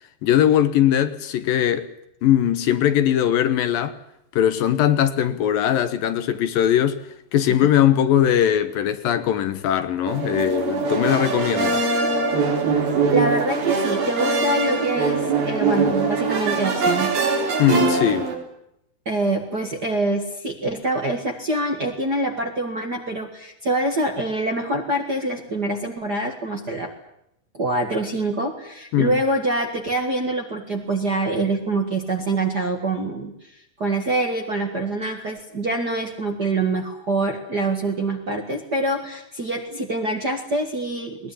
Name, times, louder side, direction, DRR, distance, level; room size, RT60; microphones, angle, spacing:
voice 1, 0.2-1.9 2.2-4.0 4.3-7.0 7.3-11.9 17.6-18.3 28.9-29.2, left 10 dB, 70° left, 2.6 m, -20 dB
sound 1, 10.1-18.3, right 4 dB, 70° right, 5.9 m, -22 dB
voice 2, 13.1-17.1 19.0-26.9 27.5-41.3, right 2 dB, 35° right, 1.7 m, -25 dB
21.0 x 20.0 x 10.0 m
omnidirectional pair, 4.5 m